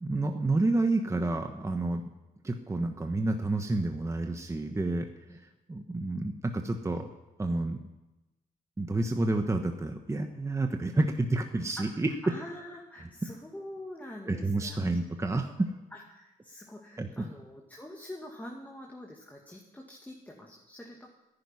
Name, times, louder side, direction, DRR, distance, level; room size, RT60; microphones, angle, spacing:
voice 1, 0.0-2.0 2.4-7.1 7.4-7.8 8.8-12.1 14.2-15.7 17.0-17.3, right 2 dB, 20° right, 5 dB, 1.3 m, -29 dB
voice 2, 11.8-14.8 15.9-21.1, left 1 dB, 10° left, -1 dB, 2.2 m, -45 dB
10.5 x 10.5 x 9.8 m, 1.0 s
cardioid pair, 80°, 16 cm